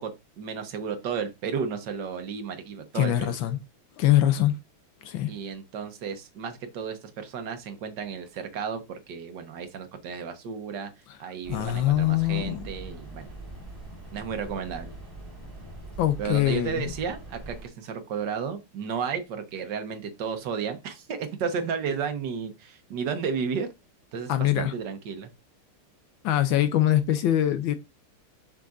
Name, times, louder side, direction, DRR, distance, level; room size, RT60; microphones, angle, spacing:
voice 1, 0.0-3.3 5.3-10.9 11.2-13.3 14.1-14.9 16.2-23.7 24.1-25.3, right 6 dB, 60° right, 1.5 m, -33 dB
voice 2, 2.9-3.6 4.0-4.5 5.0-5.3 11.5-12.7 16.0-16.9 24.3-24.7 26.2-27.7, left 12 dB, 75° left, 1.3 m, -23 dB
Roomtone vent heating large room (university heating system), 11.4-17.7, right 2 dB, 10° right, 2.8 m, -42 dB
6.5 x 5.9 x 2.5 m
omnidirectional pair, 2.4 m